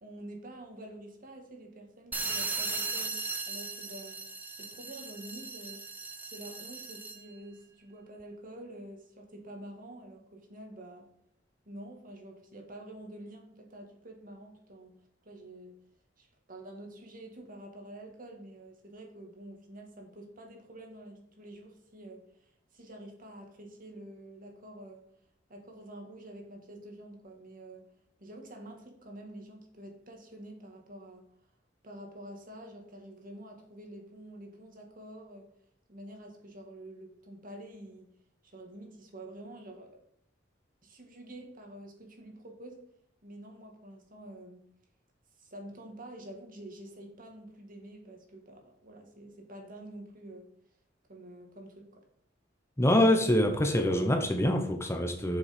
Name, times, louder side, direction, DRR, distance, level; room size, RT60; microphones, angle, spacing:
voice 1, 0.0-4.2 4.6-5.8 6.3-11.1 11.7-15.0 15.2-15.8 16.2-25.1 25.5-27.9 28.2-31.3 31.8-35.5 35.9-38.1 38.4-40.0 40.8-42.9 43.2-44.6 45.4-50.5 51.1-52.0, right 1 dB, 50° right, 2 dB, 2.0 m, -48 dB
sound 1, 2.1-7.3, right 3 dB, 10° right, 0.7 m, -37 dB
voice 2, 52.8-55.4, left 1 dB, 15° left, 4 dB, 0.9 m, -25 dB
7.3 x 7.1 x 5.2 m, 0.70 s
head